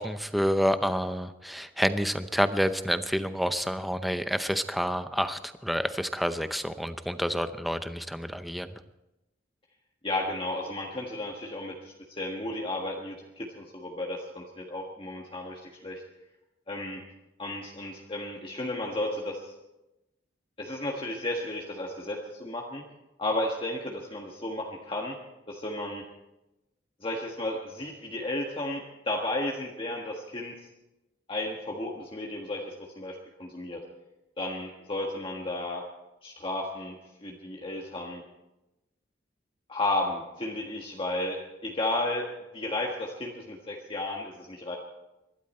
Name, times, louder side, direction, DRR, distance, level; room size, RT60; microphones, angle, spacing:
voice 1, 0.0-8.7, equal, ahead, 10 dB, 0.7 m, -28 dB
voice 2, 10.0-11.7 12.2-16.0 16.7-17.0 17.4-19.5 20.6-22.8 23.2-25.1 25.5-26.0 27.0-30.5 31.3-33.8 34.4-35.9 36.2-37.0 37.2-38.2 39.7-42.3 42.5-44.8, left 1 dB, 30° left, -1 dB, 1.6 m, -33 dB
23.0 x 12.5 x 4.4 m, 0.96 s
head